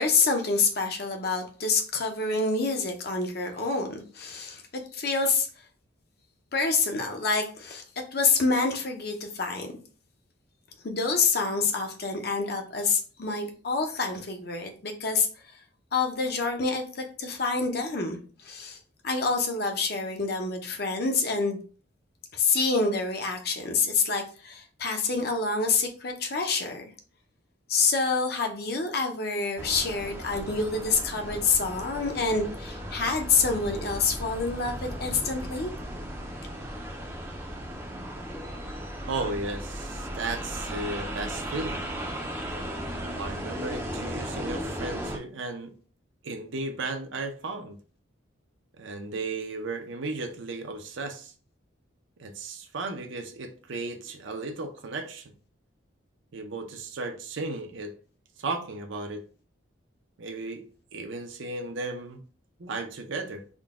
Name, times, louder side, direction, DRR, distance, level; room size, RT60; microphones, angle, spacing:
voice 1, 0.0-4.6 4.9-5.5 6.5-9.7 10.8-15.3 15.9-18.8 19.0-21.6 22.3-26.9 27.7-35.7, left 4 dB, 50° left, 4 dB, 0.6 m, -27 dB
sound 1, 29.6-45.2, equal, 10° right, 0.4 m, -36 dB
voice 2, 39.1-41.9 43.2-45.7 46.2-47.8 48.8-51.3 52.2-55.3 56.3-57.9 58.4-59.2 60.2-60.6 60.9-62.2 62.6-63.4, right 3 dB, 70° right, 6 dB, 0.6 m, -35 dB
3.7 x 2.2 x 3.5 m, 0.40 s
head